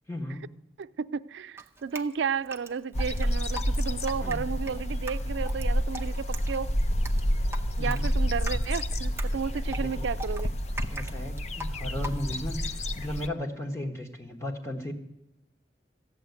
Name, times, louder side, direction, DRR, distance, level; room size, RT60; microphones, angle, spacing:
voice 1, 0.1-0.5 4.2-4.4 7.8-8.1 9.7-10.1 10.9-14.9, left 1 dB, 15° left, 2 dB, 1.5 m, -35 dB
voice 2, 0.8-6.7 7.8-10.5, right 6 dB, 85° right, 13 dB, 0.4 m, -33 dB
Drip, 1.6-12.6, right 1 dB, 15° right, 0.7 m, -42 dB
sound 1, 2.9-13.3, equal, 35° left, 0.6 m, -29 dB
14.5 x 7.8 x 9.5 m, 0.85 s
head